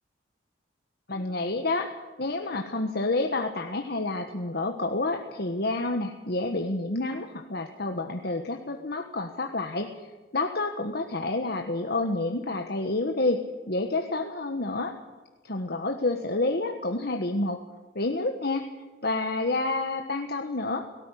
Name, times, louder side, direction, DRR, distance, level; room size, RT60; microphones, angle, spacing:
voice 1, 1.1-15.0 15.4-17.6 17.9-18.7 19.0-20.9, left 2 dB, 50° left, 5 dB, 1.4 m, -29 dB
18.0 x 18.0 x 10.0 m, 1.3 s
head